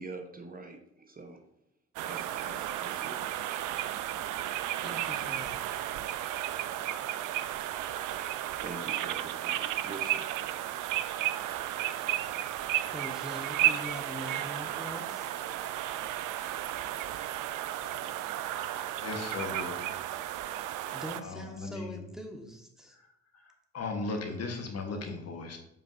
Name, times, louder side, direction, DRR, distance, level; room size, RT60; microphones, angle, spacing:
voice 1, 0.0-1.4 2.0-3.6 8.1-10.3, right 2 dB, 25° right, 4 dB, 0.9 m, -45 dB
sound 1, 2.0-21.2, right 13 dB, 60° right, 0.5 m, -33 dB
voice 2, 4.8-5.6 12.9-15.3 20.9-23.0, left 1 dB, ahead, 2 dB, 1.4 m, -43 dB
voice 3, 19.0-19.9 21.2-22.0 23.7-25.6, left 3 dB, 45° left, 4 dB, 1.2 m, -36 dB
7.3 x 5.1 x 2.6 m, 0.82 s
hypercardioid pair, 50°, 35 cm